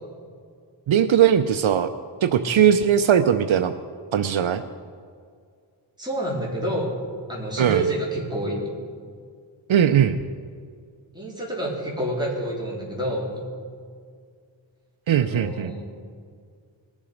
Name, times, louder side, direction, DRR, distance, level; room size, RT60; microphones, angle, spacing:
voice 1, 0.9-1.9 2.2-3.7 4.1-4.6 7.6-7.8 9.7-10.2 15.1-15.7, right 9 dB, 75° right, 10 dB, 0.6 m, -19 dB
voice 2, 6.0-7.0 7.3-8.6 11.1-13.4 15.1-15.8, right 1 dB, 10° right, -4 dB, 3.5 m, -28 dB
20.0 x 7.3 x 5.1 m, 2.1 s
wide cardioid pair, 90°, 48 cm